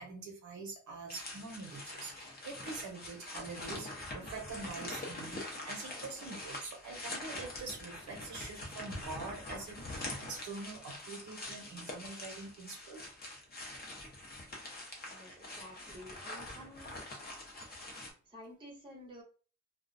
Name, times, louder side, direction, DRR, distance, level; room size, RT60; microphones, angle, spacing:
voice 1, 0.0-13.0, right 4 dB, 65° right, 2 dB, 0.8 m, -45 dB
sound 1, 1.1-18.1, left 2 dB, 30° left, 0.6 m, -44 dB
voice 2, 15.1-16.9 18.2-19.2, equal, 15° right, -1 dB, 0.6 m, -51 dB
2.3 x 2.1 x 2.4 m, 0.38 s
wide cardioid pair, 155°, 32 cm